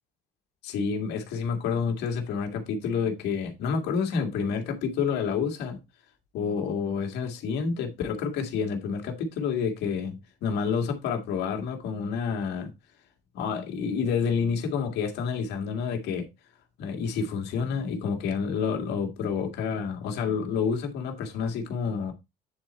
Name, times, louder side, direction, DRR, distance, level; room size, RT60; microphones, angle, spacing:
voice 1, 0.6-5.8 6.3-12.7 13.3-16.3 16.8-22.1, left 6 dB, 80° left, 2.2 m, -29 dB
9.4 x 4.4 x 4.2 m
cardioid pair, 110°, 17 cm